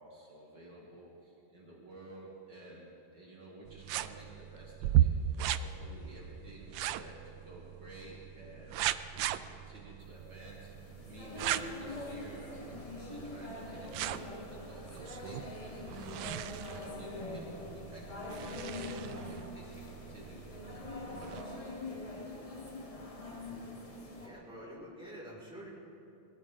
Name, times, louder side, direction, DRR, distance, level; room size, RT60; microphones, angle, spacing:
voice 1, 0.0-8.8 9.1-16.3 16.7-20.5 21.0-22.5, right 1 dB, 60° right, -5 dB, 3.0 m, -52 dB
sound 1, 3.7-21.4, right 11 dB, 75° right, 1.2 m, -37 dB
sound 2, 10.3-24.3, left 2 dB, 20° left, 1.3 m, -44 dB
voice 2, 24.2-25.7, equal, ahead, -6 dB, 4.7 m, -47 dB
23.0 x 17.0 x 3.6 m, 2.8 s
omnidirectional pair, 2.1 m